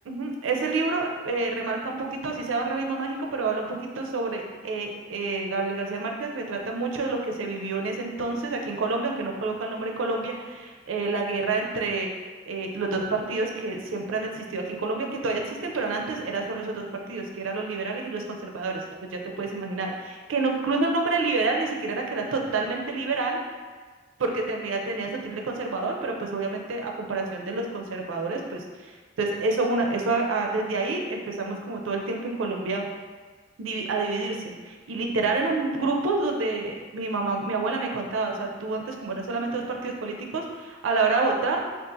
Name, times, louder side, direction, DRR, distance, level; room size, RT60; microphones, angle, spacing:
voice 1, 0.1-3.7 4.0-12.1 12.5-23.4 24.2-32.9 33.6-41.6, right 3 dB, 90° right, 1 dB, 0.4 m, -28 dB
3.7 x 2.4 x 2.6 m, 1.4 s
head